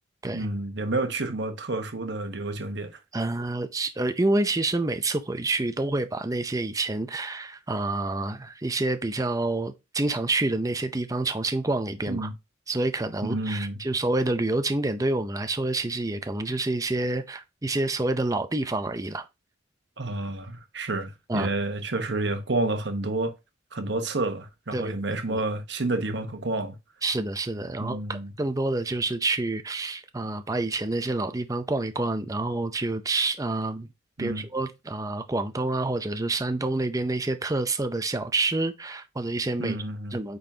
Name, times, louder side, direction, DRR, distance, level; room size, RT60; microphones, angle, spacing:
voice 1, 0.3-3.0 12.1-12.3 13.2-13.8 20.0-23.3 23.7-26.7 27.8-28.3 34.2-34.4 39.6-40.2, right 2 dB, 60° right, 1.1 m, -29 dB
voice 2, 3.1-12.3 12.7-19.3 21.3-21.5 24.7-24.9 25.3-25.4 27.0-33.9 34.2-39.8 40.1-40.4, right 2 dB, 20° right, 0.5 m, -28 dB
8.7 x 4.0 x 2.8 m
head